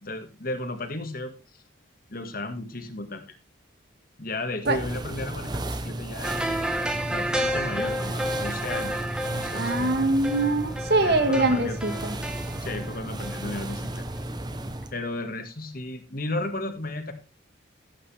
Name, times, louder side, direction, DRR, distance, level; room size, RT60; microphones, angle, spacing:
voice 1, 0.0-1.3 2.1-3.4 4.2-6.4 7.1-9.0 9.3-9.9 11.1-12.0 12.6-14.1 14.9-17.1, left 2 dB, 45° left, 7 dB, 1.8 m, -34 dB
sound 1, 4.6-14.9, right 1 dB, 20° right, 0.9 m, -34 dB
sound 2, 6.2-13.9 14.2-14.3, equal, 5° right, 1.3 m, -31 dB
voice 2, 9.5-12.2, right 2 dB, 55° right, 8 dB, 1.8 m, -23 dB
15.0 x 8.4 x 3.4 m, 0.29 s
head